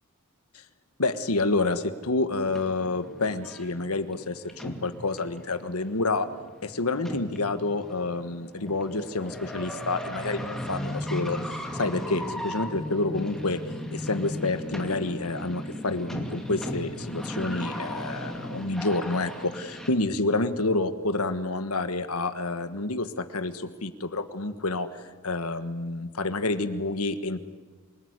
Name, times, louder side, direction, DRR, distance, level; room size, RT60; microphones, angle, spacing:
voice 1, 1.0-6.3 6.6-13.6 13.9-27.4, left 2 dB, 80° left, 10 dB, 1.5 m, -29 dB
sound 1, 2.4-19.9, left 1 dB, ahead, 2.4 m, -37 dB
27.5 x 19.0 x 9.8 m, 1.4 s
head